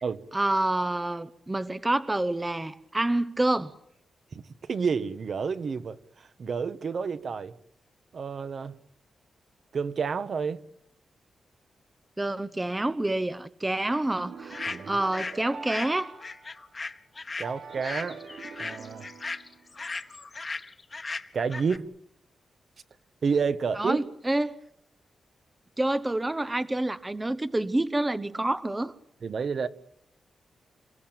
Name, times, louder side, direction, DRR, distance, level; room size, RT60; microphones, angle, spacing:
voice 1, 0.3-3.7 12.2-16.1 23.8-24.5 25.8-28.9, right 1 dB, 15° right, 0.9 m, -28 dB
voice 2, 4.3-7.6 8.1-8.8 9.7-10.6 14.7-14.9 17.4-18.2 18.6-19.1 21.3-21.8 23.2-24.1 29.2-29.7, right 5 dB, 55° right, 1.3 m, -30 dB
sound 1, 14.2-16.8 17.4-19.9, right 5 dB, 80° right, 4.2 m, -45 dB
sound 2, 14.5-15.4 15.7-21.8, left 3 dB, 30° left, 1.3 m, -37 dB
28.5 x 16.5 x 9.0 m
wide cardioid pair, 135°, 0 cm